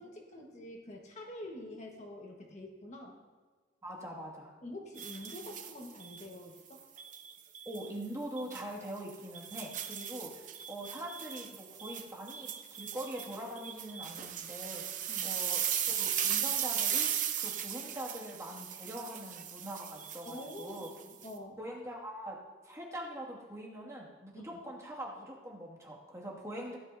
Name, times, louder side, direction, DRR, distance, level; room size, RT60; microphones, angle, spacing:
voice 1, 0.0-3.2 4.6-6.9 15.1-15.3 20.2-21.6 24.3-24.6, left 1 dB, 40° left, 0 dB, 1.5 m, -46 dB
voice 2, 3.8-4.5 7.7-17.1 17.4-20.9 21.6-22.4 22.6-26.8, right 1 dB, 15° right, -4 dB, 2.3 m, -43 dB
sound 1, 5.0-6.3 7.0-7.9 8.4-8.6 9.1-21.3, right 9 dB, 50° right, 0.9 m, -37 dB
17.0 x 11.0 x 2.8 m, 1.4 s
head